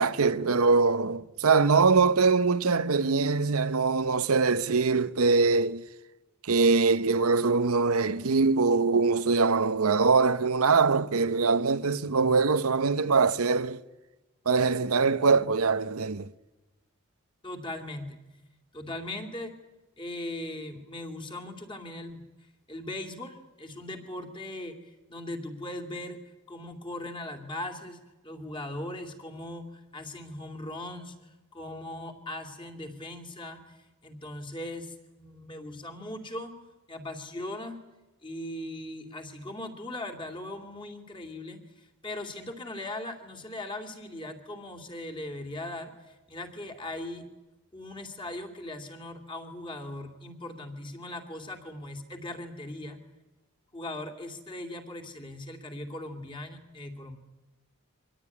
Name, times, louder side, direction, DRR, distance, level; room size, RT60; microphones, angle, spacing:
voice 1, 0.0-5.8 6.4-13.8 14.5-16.3, right 4 dB, 80° right, 0.8 m, -23 dB
voice 2, 17.4-18.2 18.7-19.6 20.0-22.2 22.7-24.8 25.1-26.2 26.5-28.0 28.2-36.6 36.9-37.8 38.2-47.3 47.7-53.0 53.7-57.2, left 1 dB, 20° left, 2.6 m, -39 dB
24.5 x 18.0 x 9.8 m
head